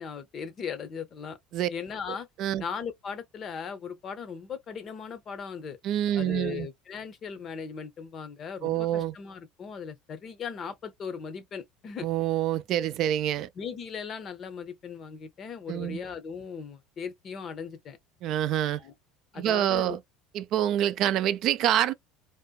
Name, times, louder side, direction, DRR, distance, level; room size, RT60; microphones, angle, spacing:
voice 1, 0.0-1.4 1.7-2.3 2.6-5.8 6.1-12.1 13.6-18.0 18.8-18.9 19.3-20.0, left 6 dB, 40° left, 0.6 m, -38 dB
voice 2, 2.1-2.6 5.8-6.7 8.6-9.1 12.0-13.5 15.7-16.0 18.2-18.8 19.4-20.0 20.3-21.9, right 11 dB, 55° right, 0.3 m, -26 dB
2.6 x 2.1 x 2.2 m
supercardioid pair, 105°, 0 cm